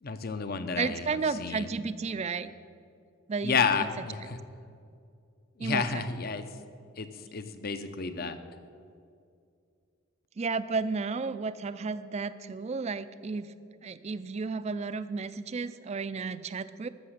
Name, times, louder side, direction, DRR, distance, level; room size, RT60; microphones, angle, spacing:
voice 1, 0.0-1.7 3.4-4.4 5.6-6.5 7.0-8.4, left 5 dB, 45° left, 10 dB, 0.7 m, -31 dB
voice 2, 0.8-2.5 3.3-3.6 5.6-6.0 10.4-13.5 13.8-16.9, right 4 dB, 30° right, 14 dB, 0.4 m, -32 dB
13.5 x 7.0 x 6.5 m, 2.4 s
head